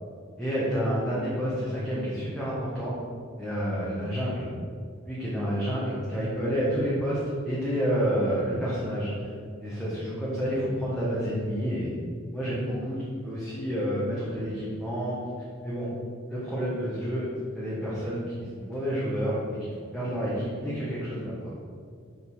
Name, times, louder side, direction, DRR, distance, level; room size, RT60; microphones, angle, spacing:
voice 1, 0.4-3.0 3.4-4.5 5.0-9.3 9.6-11.9 12.3-15.2 15.6-15.9 16.3-17.3 17.5-21.5, equal, 5° left, -9 dB, 1.5 m, -29 dB
5.9 x 5.4 x 6.1 m, 2.2 s
head